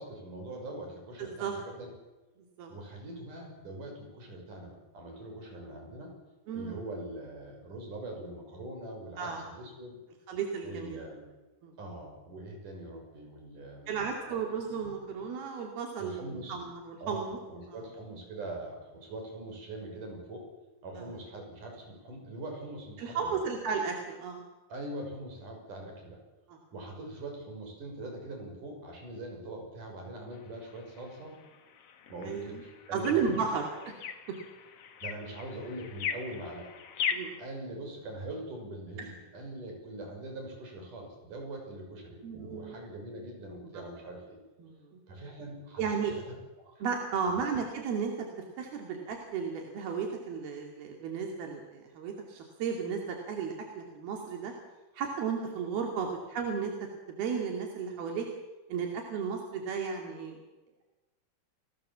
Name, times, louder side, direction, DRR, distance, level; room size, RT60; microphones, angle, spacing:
voice 1, 0.0-1.9 2.7-6.2 6.5-10.0 10.6-11.3 11.8-14.0 14.3-14.4 14.7-14.9 16.0-16.6 17.0-20.5 20.8-23.4 24.7-26.2 26.7-31.3 32.1-33.5 35.0-36.7 37.4-44.4 45.1-46.2 46.7-46.8 47.2-47.4 55.9-56.0, right 1 dB, 55° right, 2 dB, 7.8 m, -42 dB
voice 2, 1.2-1.5 2.6-2.7 6.5-6.8 9.2-9.4 10.3-11.0 11.6-11.7 13.9-17.4 17.7-17.8 21.0-21.1 23.0-24.4 26.5-26.6 32.3-32.6 32.9-33.7 37.1-37.4 42.2-42.7 43.7-43.8 44.6-44.7 45.8-46.1 46.8-48.3 48.6-54.5 54.9-56.7 57.1-58.3 58.7-60.4, right 6 dB, 85° right, 2 dB, 4.4 m, -34 dB
sound 1, 30.3-37.4, left 7 dB, 50° left, 2.1 m, -40 dB
29.5 x 19.0 x 7.4 m, 1.1 s
omnidirectional pair, 4.3 m